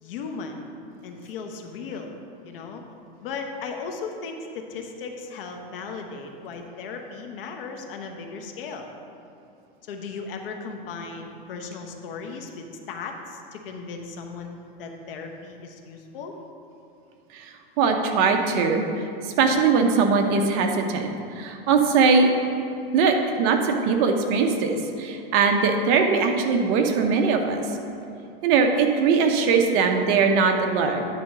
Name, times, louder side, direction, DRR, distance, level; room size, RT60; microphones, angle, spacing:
voice 1, 0.0-0.7 1.0-2.2 2.4-2.8 3.2-8.9 9.9-16.3, left 4 dB, 70° left, 3 dB, 1.1 m, -36 dB
voice 2, 17.8-19.0 19.4-22.3 22.9-27.6 28.4-31.1, right 5 dB, 40° right, 4 dB, 0.7 m, -21 dB
9.4 x 3.9 x 6.0 m, 2.7 s
supercardioid pair, 150°, 29 cm